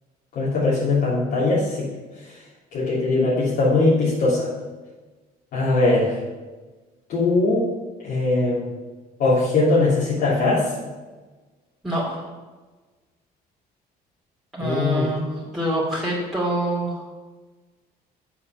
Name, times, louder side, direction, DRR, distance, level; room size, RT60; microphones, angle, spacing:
voice 1, 0.3-1.9 2.7-4.5 5.5-6.1 7.1-7.7 8.0-8.7 9.2-10.7 14.6-15.1, left 2 dB, 65° left, -9 dB, 3.1 m, -20 dB
voice 2, 11.8-12.3 14.5-17.0, right 1 dB, ahead, -7 dB, 2.8 m, -26 dB
8.3 x 7.2 x 5.8 m, 1.3 s
cardioid pair, 110°, 17 cm